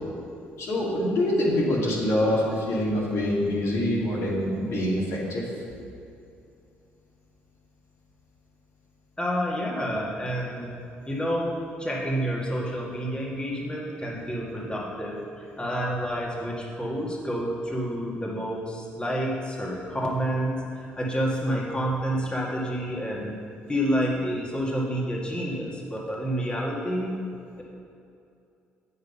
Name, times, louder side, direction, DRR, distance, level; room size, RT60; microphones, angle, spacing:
voice 1, 0.6-5.4, left 1 dB, 65° left, -5 dB, 2.0 m, -25 dB
voice 2, 9.2-10.7 11.1-23.4 23.7-27.2 27.6-27.7, equal, 15° left, -4 dB, 1.9 m, -29 dB
7.8 x 5.6 x 5.5 m, 2.6 s
hypercardioid pair, 55°, 5 cm